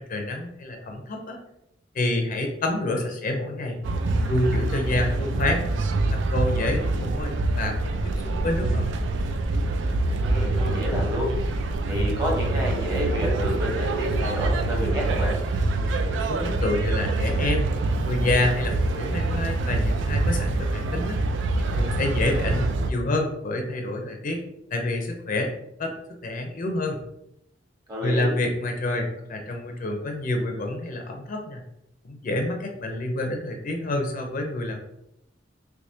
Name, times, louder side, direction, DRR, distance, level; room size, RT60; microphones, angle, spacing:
voice 1, 0.0-1.4 1.9-3.8 4.3-5.6 6.1-9.0 16.3-17.7 18.0-21.2 21.7-24.4 24.7-25.5 25.8-25.9 26.2-27.0 28.0-31.6 32.0-34.8, left 2 dB, 45° left, 3 dB, 0.5 m, -28 dB
sound 1, 3.8-22.9, right 2 dB, 70° right, 0.4 m, -25 dB
voice 2, 10.2-11.3 11.9-15.4 27.9-28.3, equal, 20° right, -2 dB, 1.0 m, -29 dB
3.4 x 3.1 x 2.7 m, 0.79 s
head